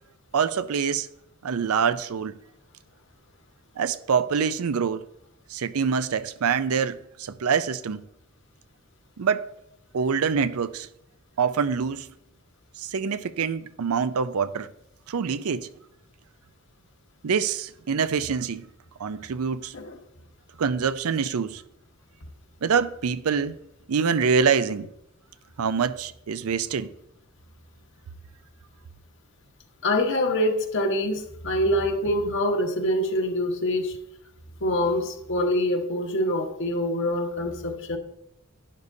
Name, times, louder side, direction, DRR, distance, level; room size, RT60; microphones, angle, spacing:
voice 1, 0.3-1.1 1.4-2.4 3.8-5.0 5.5-8.0 9.2-9.4 9.9-10.9 11.4-12.1 12.8-14.7 15.1-15.7 17.2-18.7 19.0-19.7 20.6-21.6 22.6-23.6 23.9-24.9 25.6-26.9, right 6 dB, 75° right, 0.5 m, -25 dB
voice 2, 29.8-34.0 34.6-38.0, left 1 dB, 55° left, 1.2 m, -25 dB
12.0 x 9.6 x 2.7 m
head